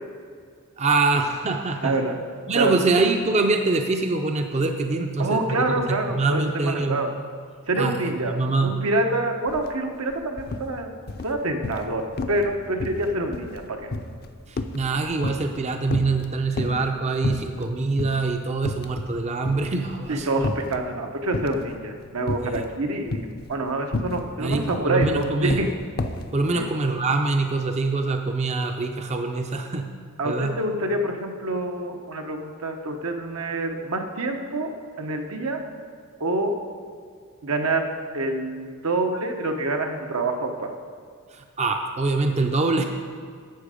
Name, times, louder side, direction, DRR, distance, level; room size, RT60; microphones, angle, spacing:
voice 1, 0.8-2.0 2.5-5.4 5.9-7.0 7.8-8.8 14.5-20.3 22.4-22.6 24.4-25.6 26.3-29.9 30.2-30.5 41.3-42.8, right 3 dB, 30° right, 4 dB, 0.5 m, -24 dB
voice 2, 1.8-2.2 2.5-2.8 5.2-7.1 7.7-8.3 8.6-10.9 11.2-13.8 20.1-25.7 26.5-26.7 30.2-34.7 35.0-35.6 36.2-36.6 37.4-37.9 38.1-40.7, right 2 dB, 80° right, 3 dB, 1.0 m, -26 dB
sound 1, 9.5-9.7 10.0-10.7 11.1-11.9 12.2-12.5 12.8-15.6 15.9-16.9 17.2-17.7 18.0-18.2 18.6-19.2 19.4-20.8 21.3-21.7 22.3-22.7 23.1-26.3, left 2 dB, 45° left, 0.5 m, -30 dB
11.5 x 7.6 x 5.0 m, 2.1 s
head